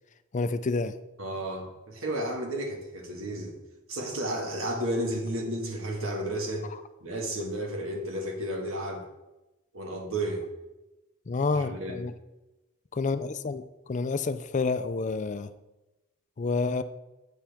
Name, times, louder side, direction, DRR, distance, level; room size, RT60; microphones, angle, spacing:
voice 1, 0.3-0.9 11.3-12.1 12.9-13.6 13.9-15.5 16.4-16.8, left 4 dB, 35° left, 12 dB, 0.4 m, -28 dB
voice 2, 1.2-3.6 3.9-6.7 7.0-9.0 9.7-10.5 11.5-12.0, right 1 dB, 70° right, 1 dB, 1.8 m, -32 dB
8.9 x 7.4 x 3.5 m, 1.0 s
head